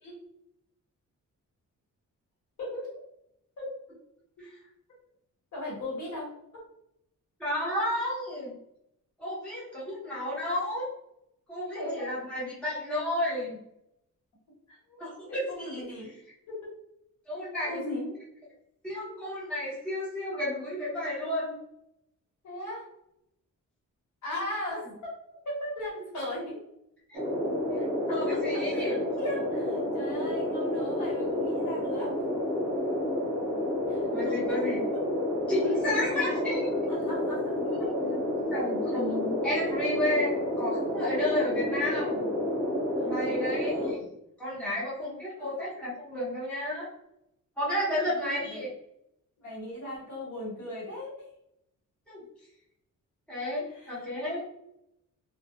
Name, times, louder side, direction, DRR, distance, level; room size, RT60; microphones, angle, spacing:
voice 1, 5.5-6.6 11.7-12.1 14.7-15.0 15.3-16.1 16.5-16.7 17.6-18.1 22.4-22.9 24.2-24.9 25.4-26.6 28.1-32.2 33.9-34.6 36.9-37.6 42.9-44.0 45.4-45.6 48.0-48.7 49.4-51.2 53.7-54.0, left 1 dB, 65° left, -5 dB, 1.3 m, -38 dB
voice 2, 7.4-8.5 9.2-10.9 11.5-13.6 15.0-15.8 17.3-17.8 18.8-21.5 27.1-27.2 27.8-27.9 28.1-29.0 34.1-34.8 35.5-36.7 37.8-42.2 43.0-44.0 44.4-46.9 47.6-48.7 52.1-52.2 53.3-54.4, left 1 dB, 5° left, -8 dB, 0.9 m, -32 dB
sound 1, 27.1-43.9, left 1 dB, 25° right, 0.9 m, -30 dB
2.3 x 2.2 x 2.6 m, 0.78 s
wide cardioid pair, 160°, 31 cm